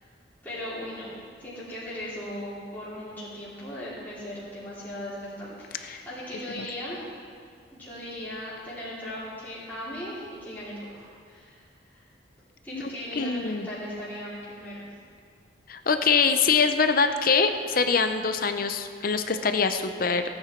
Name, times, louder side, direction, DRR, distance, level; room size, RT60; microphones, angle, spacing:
voice 1, 0.4-7.0 7.7-11.6 11.9-12.0 12.6-14.8, left 1 dB, 10° left, -12 dB, 3.2 m, -38 dB
voice 2, 13.2-13.7 15.7-20.2, left 5 dB, 50° left, 8 dB, 0.6 m, -24 dB
17.0 x 8.8 x 4.5 m, 2.1 s
head